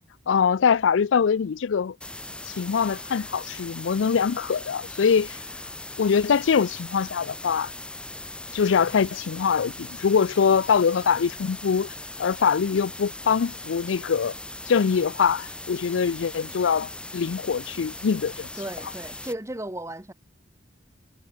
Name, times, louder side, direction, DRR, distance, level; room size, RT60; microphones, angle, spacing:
voice 1, 0.3-2.0 2.5-5.4 6.0-7.7 8.5-11.9 12.2-14.3 14.7-18.5, left 6 dB, 75° left, 0.4 m, -23 dB
sound 1, 2.0-19.4, left 2 dB, 5° left, 1.7 m, -39 dB
voice 2, 18.6-20.1, right 1 dB, 15° right, 1.2 m, -35 dB
head